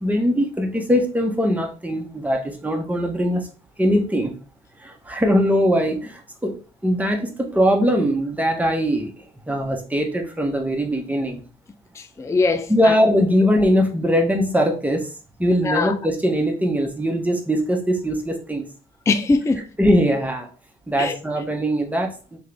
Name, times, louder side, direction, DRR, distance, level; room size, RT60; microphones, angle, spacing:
voice 1, 0.0-3.5 3.8-4.3 4.8-6.6 6.8-9.1 9.5-11.4 12.7-15.1 15.4-18.6 19.8-20.5 20.9-22.4, equal, 5° right, 1.1 m, -21 dB
voice 2, 12.0-12.9 15.6-15.9 19.1-19.6 21.0-21.2, left 3 dB, 15° left, 0.4 m, -21 dB
3.8 x 3.5 x 3.5 m
cardioid pair, 90°, 20 cm